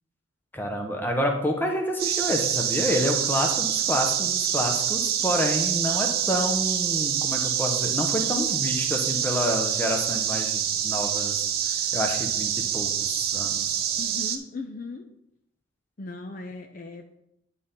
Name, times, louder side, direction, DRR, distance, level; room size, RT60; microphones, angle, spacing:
voice 1, 0.5-11.4 11.9-13.8, left 1 dB, 10° left, 2 dB, 0.9 m, -28 dB
sound 1, 2.0-14.4, right 9 dB, 45° right, 0.5 m, -26 dB
voice 2, 14.0-15.0 16.0-17.2, left 3 dB, 40° left, 4 dB, 0.5 m, -38 dB
11.0 x 4.2 x 3.8 m, 0.82 s
head